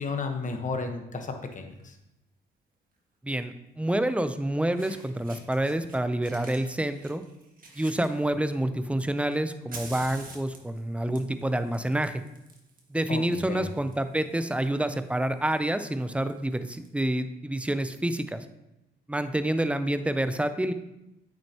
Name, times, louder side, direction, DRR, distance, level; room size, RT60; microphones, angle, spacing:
voice 1, 0.0-2.0 13.1-13.7, left 4 dB, 40° left, 5 dB, 1.2 m, -33 dB
Fire, 1.7-1.9 3.4-3.5 4.4-4.5 4.7-5.9 6.2-8.6 9.2-16.9, right 3 dB, 45° right, 1.7 m, -49 dB
voice 2, 3.2-7.2 7.8-12.2 12.9-18.5 19.1-20.7, right 1 dB, 5° right, 10 dB, 0.5 m, -28 dB
8.8 x 6.4 x 2.9 m, 0.91 s
cardioid pair, 90°, 20 cm